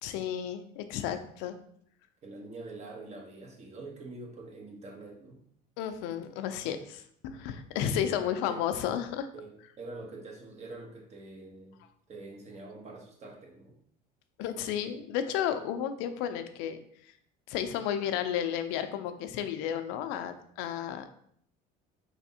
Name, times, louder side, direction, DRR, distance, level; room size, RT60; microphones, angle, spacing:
voice 1, 0.0-1.5 5.8-9.3 14.4-16.8 17.5-21.1, left 9 dB, 80° left, 9 dB, 0.4 m, -32 dB
voice 2, 2.2-5.4 8.1-8.6 9.3-11.8 12.1-13.7, right 3 dB, 40° right, 2 dB, 1.0 m, -45 dB
3.9 x 3.4 x 2.7 m, 0.66 s
supercardioid pair, 95°, 18 cm